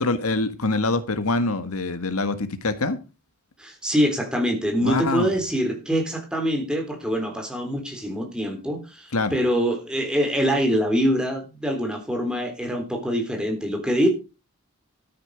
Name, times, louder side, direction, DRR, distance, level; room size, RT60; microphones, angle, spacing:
voice 1, 0.0-3.0 4.8-5.3 9.1-9.3, left 2 dB, 80° left, 1.6 m, -24 dB
voice 2, 3.6-14.1, equal, 5° right, 3.6 m, -24 dB
13.0 x 9.6 x 4.8 m
head